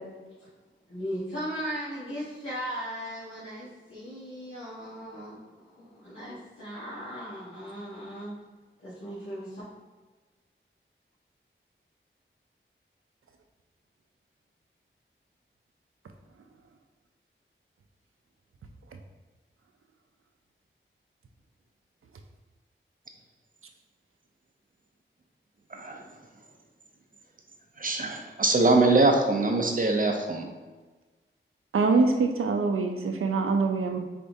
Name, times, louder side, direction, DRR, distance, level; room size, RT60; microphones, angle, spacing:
voice 1, 0.9-8.3 8.8-9.6, equal, 90° left, -13 dB, 1.3 m, -37 dB
voice 2, 27.8-30.5, right 2 dB, 40° right, 2 dB, 0.6 m, -23 dB
voice 3, 31.7-34.0, right 4 dB, 90° right, 5 dB, 0.4 m, -24 dB
4.4 x 3.5 x 2.6 m, 1.3 s
wide cardioid pair, 50°, 21 cm